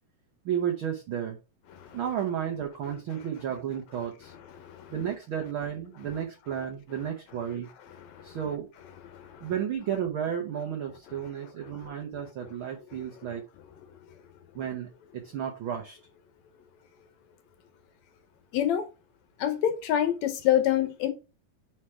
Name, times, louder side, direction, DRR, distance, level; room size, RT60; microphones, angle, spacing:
voice 1, 0.4-1.4 1.9-4.3 4.9-7.7 8.2-8.7 9.4-13.4 14.5-14.9 15.1-16.0, right 9 dB, 80° right, 1.1 m, -32 dB
voice 2, 4.6-4.9 8.1-8.4 9.1-9.5 18.5-18.9 19.4-21.1, left 11 dB, 75° left, 1.9 m, -27 dB
4.9 x 4.4 x 4.8 m
omnidirectional pair, 3.6 m